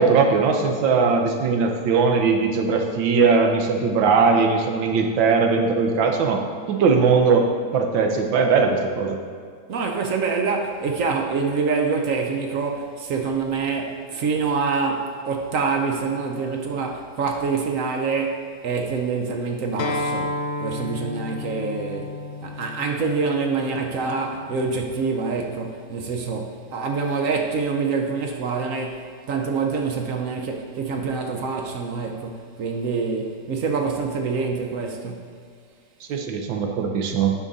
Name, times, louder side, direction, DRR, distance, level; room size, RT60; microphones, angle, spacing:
voice 1, 0.0-6.4 6.7-7.5 7.7-9.2 36.1-37.3, right 5 dB, 80° right, 3 dB, 1.5 m, -19 dB
voice 2, 9.7-35.3, right 4 dB, 60° right, 3 dB, 0.9 m, -26 dB
Acoustic guitar, 19.8-25.0, left 2 dB, 90° left, 1.4 m, -32 dB
9.7 x 5.1 x 4.0 m, 2.1 s
omnidirectional pair, 2.1 m